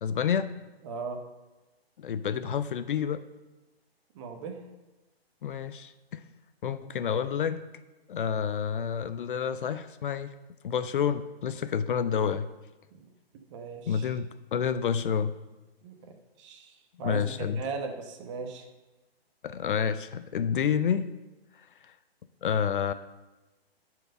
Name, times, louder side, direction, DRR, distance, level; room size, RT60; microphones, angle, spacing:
voice 1, 0.0-0.5 2.0-3.2 5.4-6.3 6.6-7.6 8.1-10.3 10.6-12.5 13.9-15.3 17.0-17.6 19.4-21.1 21.8-21.9 22.4-22.9, left 7 dB, 55° left, 13 dB, 0.6 m, -29 dB
voice 2, 0.8-1.2 4.1-4.6 12.9-13.0 13.5-14.1 15.8-18.7, right 4 dB, 30° right, 5 dB, 1.1 m, -38 dB
10.0 x 4.7 x 6.6 m, 1.1 s
hypercardioid pair, 145°, 31 cm